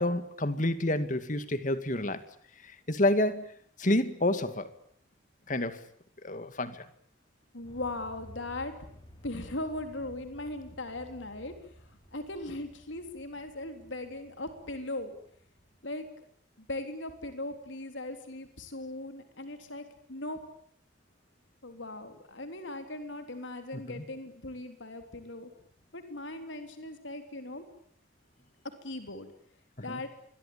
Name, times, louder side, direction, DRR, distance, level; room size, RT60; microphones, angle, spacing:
voice 1, 0.0-2.2 2.6-3.5 3.8-4.7 5.5-5.8 6.2-6.8 23.7-24.1 29.8-30.0, left 1 dB, 40° left, 11 dB, 2.2 m, -29 dB
voice 2, 7.5-8.7 9.2-11.5 11.9-15.2 15.8-16.2 16.6-20.4 21.6-25.5 25.9-27.6 28.6-29.3 29.8-30.1, left 2 dB, 75° left, 7 dB, 3.6 m, -39 dB
sound 1, 7.6-16.1, equal, 25° left, 7.1 m, -54 dB
26.5 x 22.5 x 8.7 m, 0.64 s
head